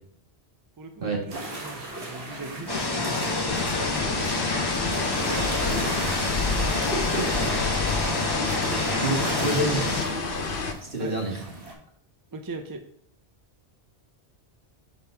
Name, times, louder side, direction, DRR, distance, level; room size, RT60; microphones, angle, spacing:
voice 1, 0.8-4.6 5.7-6.3 8.5-8.9 9.3-9.5 10.1-10.2 11.0-11.1 12.3-12.8, right 2 dB, 25° right, 5 dB, 0.5 m, -40 dB
sound 1, 1.3-11.7, right 2 dB, 80° right, 1.7 m, -36 dB
sound 2, 2.7-10.1, left 3 dB, 25° left, 0.8 m, -28 dB
sound 3, 3.5-10.7, left 4 dB, 55° left, 1.0 m, -29 dB
voice 2, 6.9-7.7 9.0-9.9 10.9-11.4, right 1 dB, 55° right, 0 dB, 1.9 m, -28 dB
5.2 x 4.6 x 5.7 m, 0.63 s
omnidirectional pair, 1.1 m